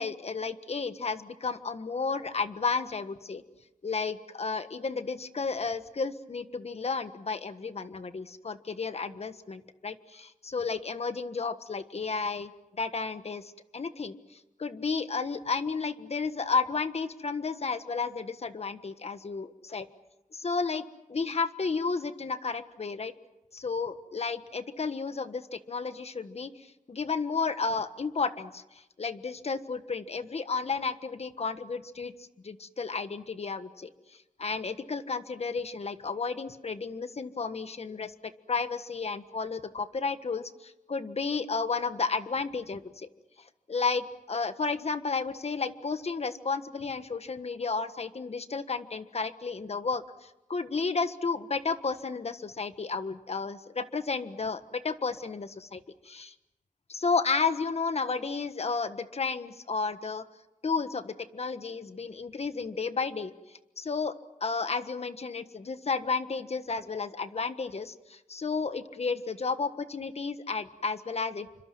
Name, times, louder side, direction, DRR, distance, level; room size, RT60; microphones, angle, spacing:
voice 1, 0.0-3.4 3.8-12.5 12.8-13.4 13.7-19.9 20.3-20.8 21.1-23.1 23.5-28.6 29.0-32.1 32.4-33.9 34.4-38.1 38.5-43.1 43.7-56.3 56.9-60.2 60.6-63.3 63.8-64.1 64.4-71.5, left 4 dB, 50° left, 10 dB, 1.4 m, -32 dB
29.0 x 25.5 x 6.2 m, 0.97 s
wide cardioid pair, 90°, 13 cm